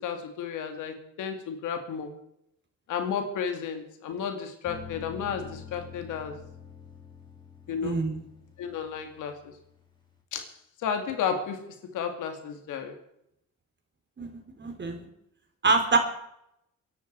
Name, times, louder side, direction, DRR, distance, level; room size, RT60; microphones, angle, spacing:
voice 1, 0.0-2.1 2.9-6.4 7.7-8.0 8.6-9.5 10.3-10.5 10.8-13.0, left 7 dB, 85° left, 2.5 m, -33 dB
sound 1, 4.6-10.2, left 6 dB, 15° left, 4.4 m, -47 dB
voice 2, 7.8-8.2 14.2-15.0 15.6-16.0, right 4 dB, 35° right, 3.9 m, -26 dB
23.5 x 11.0 x 4.8 m
cardioid pair, 90°, 30 cm